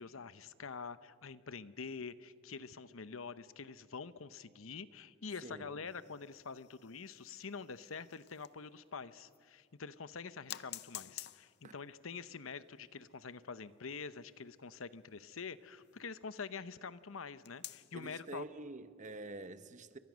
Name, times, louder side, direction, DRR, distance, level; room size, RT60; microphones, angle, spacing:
voice 1, 0.0-18.5, left 5 dB, 80° left, 0.9 m, -46 dB
voice 2, 5.4-5.7 11.6-11.7 17.9-20.0, right 2 dB, 35° right, 1.0 m, -47 dB
sound 1, 5.9-8.8 9.3-9.4 10.5-16.5 17.4-18.1, left 14 dB, 55° left, 0.6 m, -52 dB
29.0 x 24.0 x 6.3 m
head